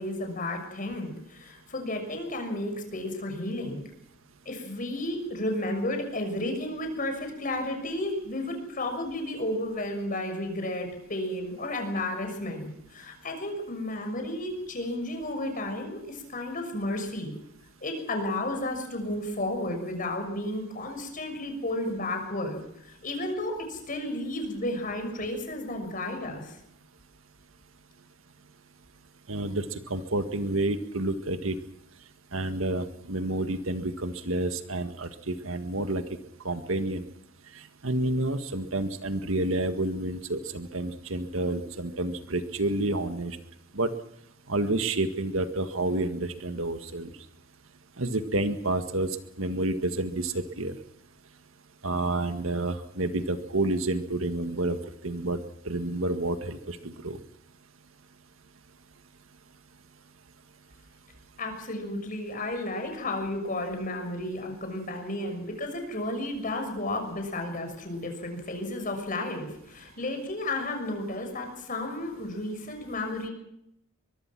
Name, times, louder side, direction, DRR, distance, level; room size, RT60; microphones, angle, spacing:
voice 1, 0.0-3.8 4.4-17.3 17.8-26.6 61.4-73.3, left 1 dB, 40° left, 5 dB, 6.3 m, -32 dB
voice 2, 29.3-29.6 29.9-31.6 32.3-36.0 36.4-37.0 37.8-43.4 43.7-43.9 44.5-47.1 48.0-49.1 49.4-50.8 51.8-54.8 55.0-55.4 55.7-57.2, right 2 dB, 75° right, 9 dB, 1.9 m, -29 dB
23.5 x 23.0 x 6.1 m, 0.81 s
head